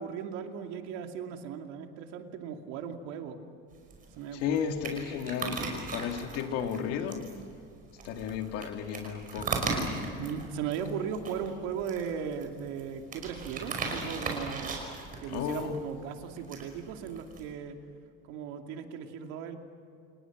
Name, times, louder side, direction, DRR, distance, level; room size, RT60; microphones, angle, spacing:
voice 1, 0.0-3.4 4.2-4.8 10.2-14.9 15.2-17.8 18.2-19.6, right 7 dB, 55° right, 4 dB, 2.6 m, -37 dB
sound 1, 3.7-17.5, right 4 dB, 25° right, 5.4 m, -38 dB
voice 2, 4.3-7.3 8.0-9.7 15.3-15.8, left 7 dB, 45° left, 5 dB, 2.3 m, -33 dB
30.0 x 29.0 x 6.1 m, 2.5 s
cardioid pair, 180°, 33 cm